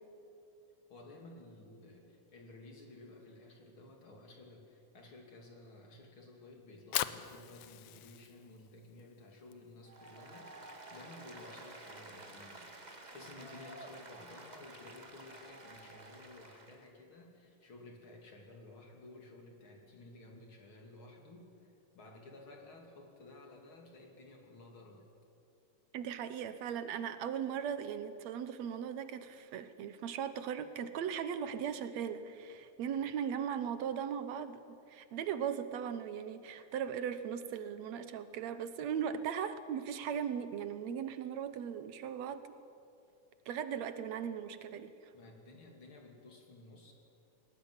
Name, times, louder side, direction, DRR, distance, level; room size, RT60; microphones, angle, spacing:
voice 1, 0.9-25.1 45.1-46.9, left 2 dB, 40° left, 2 dB, 3.2 m, -54 dB
Fire, 6.6-12.8, left 13 dB, 85° left, 1.5 m, -43 dB
Applause, 9.8-16.9, right 2 dB, 35° right, 0.7 m, -51 dB
voice 2, 25.9-42.4 43.5-45.1, right 8 dB, 65° right, 11 dB, 1.9 m, -38 dB
21.0 x 19.0 x 9.7 m, 2.6 s
omnidirectional pair, 3.9 m